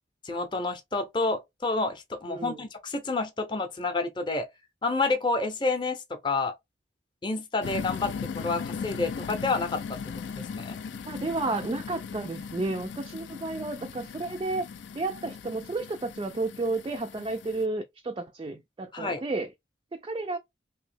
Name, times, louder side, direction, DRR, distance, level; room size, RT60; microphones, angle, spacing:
voice 1, 0.2-4.5 4.8-6.5 7.2-9.8 10.4-10.8 18.9-19.2, left 3 dB, 25° left, 0.6 m, -29 dB
voice 2, 2.3-2.7 11.1-14.7 15.0-19.5 19.9-20.4, right 2 dB, 25° right, 0.3 m, -32 dB
sound 1, 7.6-17.6, left 6 dB, 70° left, 0.3 m, -38 dB
2.9 x 2.7 x 3.3 m
head